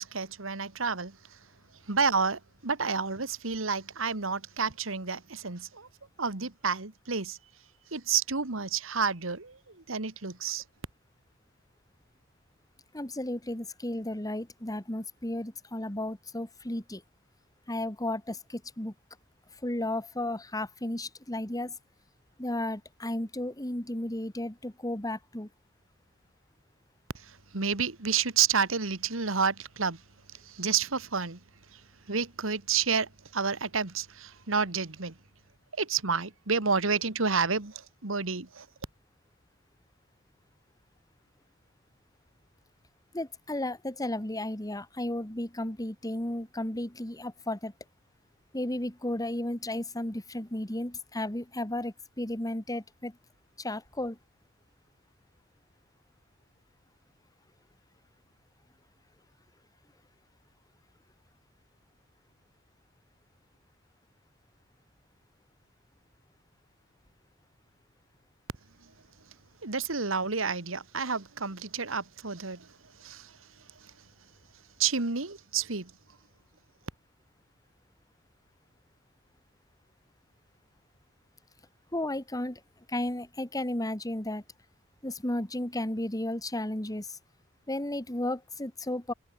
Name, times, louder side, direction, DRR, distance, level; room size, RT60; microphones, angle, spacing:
voice 1, 0.0-1.4 1.8-5.9 6.2-7.4 7.9-10.6 27.1-30.0 30.3-31.4 31.7-35.2 35.7-38.7 68.8-68.9 69.6-73.9 74.8-75.9, right 5 dB, 85° right, 2.0 m, -30 dB
voice 2, 12.9-17.0 17.7-18.9 19.6-21.7 22.4-25.5 43.1-47.7 48.5-53.2 53.6-54.2 81.9-82.6 82.9-84.4 85.0-87.2 87.7-89.1, left 1 dB, 20° left, 2.3 m, -33 dB
head